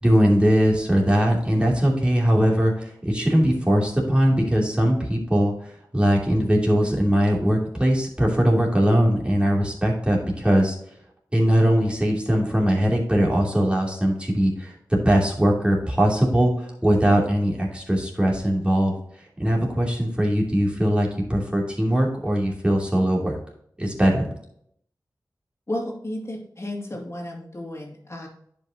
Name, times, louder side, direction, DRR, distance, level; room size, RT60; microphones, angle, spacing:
voice 1, 0.0-10.8 11.3-18.9 19.4-23.4 23.8-24.3, equal, 15° right, -3 dB, 2.9 m, -21 dB
voice 2, 25.7-28.3, left 1 dB, 40° left, -1 dB, 2.4 m, -33 dB
10.5 x 5.5 x 2.9 m, 0.67 s
wide cardioid pair, 50°, 7 cm